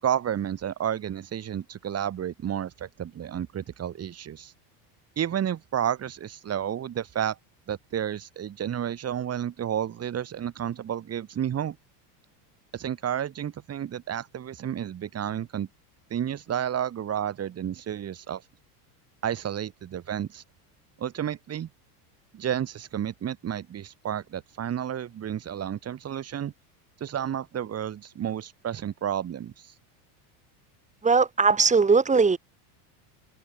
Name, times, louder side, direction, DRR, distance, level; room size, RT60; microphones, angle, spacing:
voice 1, 0.0-4.5 5.2-7.4 7.7-11.8 12.7-15.7 16.1-18.4 19.2-20.4 21.0-21.7 22.3-26.5 27.0-29.7, right 9 dB, 30° right, 7.1 m, -31 dB
voice 2, 31.0-32.4, right 4 dB, 15° right, 5.1 m, -19 dB
open air
supercardioid pair, 140°, 47 cm